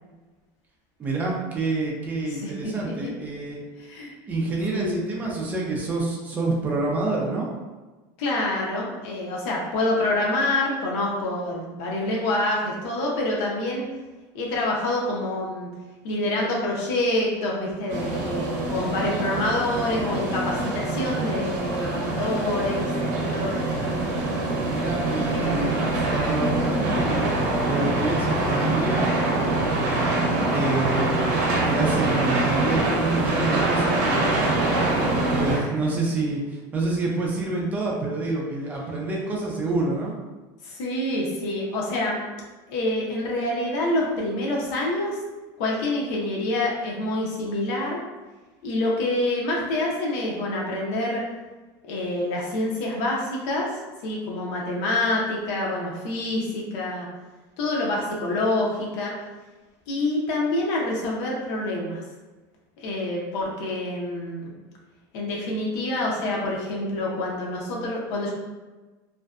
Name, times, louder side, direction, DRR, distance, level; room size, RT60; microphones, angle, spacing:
voice 1, 1.0-3.6 4.3-7.5 24.7-29.1 29.9-30.1 30.5-34.5 35.3-40.1, right 3 dB, 15° right, -2 dB, 0.4 m, -28 dB
voice 2, 3.8-4.1 4.7-5.0 8.2-13.8 14.3-15.7 16.0-22.9 23.2-23.9 25.3-25.7 26.1-26.2 30.2-30.6 35.6-35.7 40.6-42.2 42.7-45.2 45.6-48.0 48.6-51.2 51.8-53.7 54.0-57.1 57.6-59.1 59.9-62.0 62.8-64.5 65.1-68.3, left 1 dB, 65° left, -3 dB, 0.6 m, -27 dB
sound 1, 17.9-35.6, right 2 dB, 65° right, 0.7 m, -24 dB
2.5 x 2.1 x 2.3 m, 1.2 s
cardioid pair, 160°, 10 cm